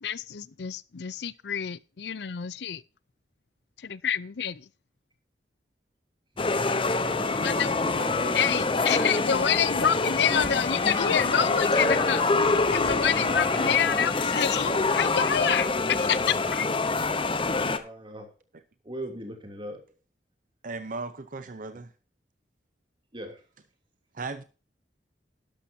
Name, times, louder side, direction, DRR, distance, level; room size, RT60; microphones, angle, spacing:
voice 1, 0.0-2.8 3.8-4.7 7.4-7.7 8.3-16.7, left 8 dB, 70° left, 0.5 m, -28 dB
sound 1, 6.4-17.8, left 3 dB, 30° left, 0.9 m, -26 dB
voice 2, 7.0-8.9 13.6-14.0 17.7-18.3 18.8-19.8 23.1-23.4, right 1 dB, 30° right, 2.8 m, -39 dB
sound 2, 10.4-15.1, equal, ahead, 1.6 m, -44 dB
voice 3, 20.6-21.9 24.1-24.4, right 3 dB, 50° right, 0.7 m, -36 dB
12.0 x 11.5 x 2.7 m
head